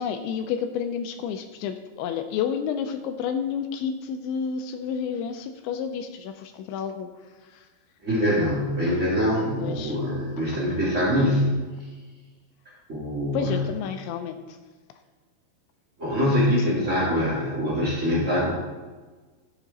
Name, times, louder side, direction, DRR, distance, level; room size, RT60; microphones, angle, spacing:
voice 1, 0.0-7.1 7.5-7.7 9.6-10.0 13.3-14.4 16.6-16.7, left 7 dB, 80° left, 7 dB, 2.7 m, -30 dB
voice 2, 8.0-11.6 12.9-13.6 16.0-18.5, equal, 45° right, -7 dB, 0.9 m, -24 dB
14.5 x 6.9 x 4.1 m, 1.3 s
omnidirectional pair, 5.8 m